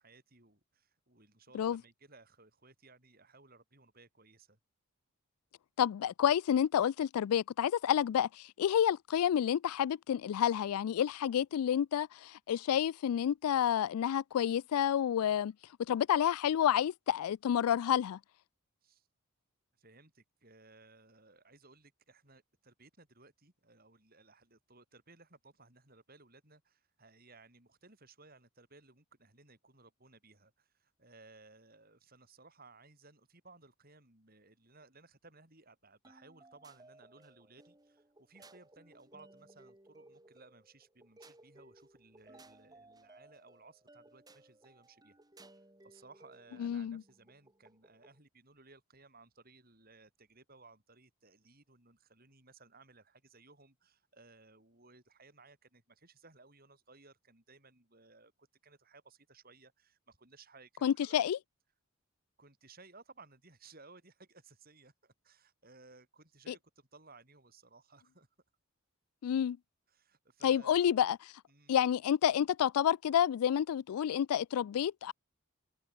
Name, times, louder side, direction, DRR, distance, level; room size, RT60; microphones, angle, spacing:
voice 1, 0.0-4.6 18.8-19.1 19.8-45.2 45.4-61.2 62.4-68.3 69.9-70.9 71.5-71.8, right 3 dB, 40° right, 7.8 m, -60 dB
voice 2, 5.8-15.5 15.9-18.2 46.6-47.0 60.8-61.4 66.5-66.6 69.2-69.6 70.4-71.2 71.7-75.1, left 9 dB, 85° left, 0.3 m, -29 dB
sound 1, 36.0-48.2, right 2 dB, 15° right, 2.5 m, -60 dB
head